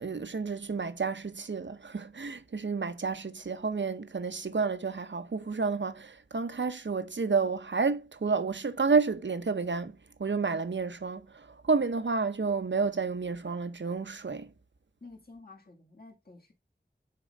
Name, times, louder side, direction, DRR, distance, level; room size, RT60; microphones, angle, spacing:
voice 1, 0.0-14.5, right 4 dB, 80° right, 0.7 m, -30 dB
voice 2, 15.0-16.5, left 3 dB, 55° left, 2.0 m, -51 dB
6.8 x 4.2 x 4.8 m
wide cardioid pair, 40°, 19 cm